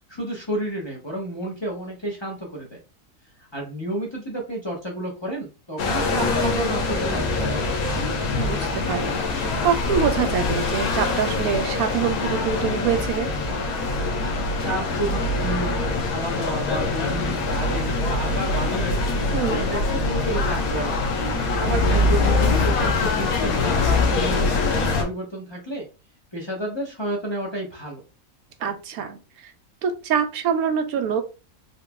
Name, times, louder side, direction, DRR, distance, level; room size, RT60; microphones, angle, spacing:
voice 1, 0.1-2.8 3.4-7.9 14.6-19.0 19.5-21.1 21.6-25.9 26.3-28.0, right 1 dB, 25° left, -2 dB, 0.7 m, -31 dB
sound 1, 5.8-25.0, left 3 dB, 90° left, 1.3 m, -23 dB
voice 2, 8.4-13.3 19.3-19.6 28.6-29.5 29.8-31.2, right 7 dB, 85° right, 8 dB, 1.1 m, -25 dB
4.1 x 2.8 x 2.2 m, 0.31 s
omnidirectional pair, 1.5 m